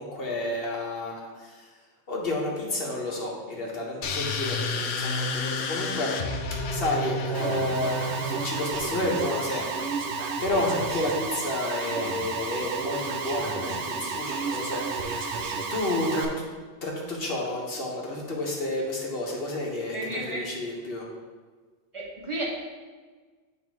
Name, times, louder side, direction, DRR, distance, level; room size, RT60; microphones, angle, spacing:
voice 1, 0.0-1.7 2.1-6.1 6.7-9.9 10.4-16.5 16.8-21.1, left 1 dB, 60° left, -2 dB, 1.4 m, -30 dB
sound 1, 4.0-8.8, left 2 dB, 75° left, 0.9 m, -30 dB
Alarm, 7.3-16.3, right 4 dB, 80° right, 0.9 m, -32 dB
voice 2, 19.9-20.4 21.9-22.5, right 1 dB, 30° right, -4 dB, 1.2 m, -32 dB
7.3 x 3.3 x 4.6 m, 1.4 s
omnidirectional pair, 1.1 m